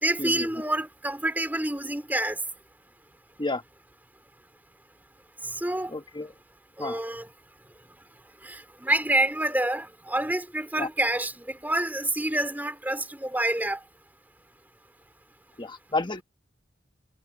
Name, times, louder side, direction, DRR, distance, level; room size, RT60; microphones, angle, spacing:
voice 1, 0.0-2.4 5.5-5.9 6.8-7.3 8.4-13.8, right 1 dB, 10° right, 3.7 m, -27 dB
voice 2, 5.9-6.3 6.8-7.0 10.8-10.9 15.6-16.2, left 2 dB, 25° left, 1.3 m, -30 dB
head